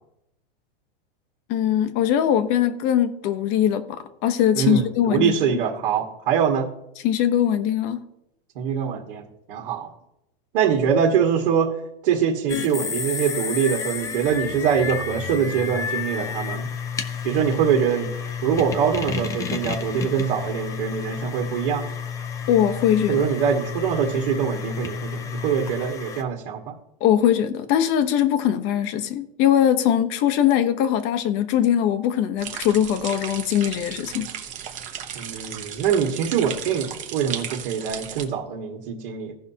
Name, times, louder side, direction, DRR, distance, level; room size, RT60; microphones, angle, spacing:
voice 1, 1.5-5.4 7.0-8.0 22.5-23.2 27.0-34.3, left 10 dB, 35° left, 0.9 m, -21 dB
voice 2, 4.6-6.7 8.6-9.9 10.5-11.7 12.0-16.7 17.2-21.9 23.1-26.8 35.2-39.3, right 7 dB, 60° right, 1.7 m, -23 dB
sound 1, 12.5-26.2, left 7 dB, 10° left, 0.4 m, -31 dB
sound 2, 32.4-38.2, right 9 dB, 25° right, 0.9 m, -35 dB
17.0 x 5.7 x 2.8 m
supercardioid pair, 155°, 30 cm